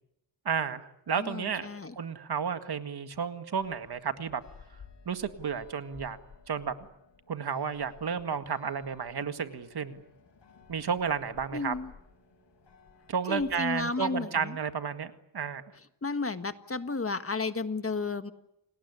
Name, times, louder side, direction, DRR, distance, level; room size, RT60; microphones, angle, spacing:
voice 1, 0.5-1.7 1.9-4.4 5.1-6.2 6.5-6.7 7.3-10.0 10.7-11.7 13.1-15.6, right 6 dB, 65° right, 9 dB, 1.9 m, -32 dB
voice 2, 1.2-1.9 11.5-11.9 13.3-14.6 16.0-18.3, left 3 dB, 35° left, 10 dB, 1.6 m, -32 dB
sound 1, 3.5-13.8, left 5 dB, 80° left, 8.0 m, -56 dB
29.0 x 19.5 x 9.8 m, 0.85 s
wide cardioid pair, 85°, 41 cm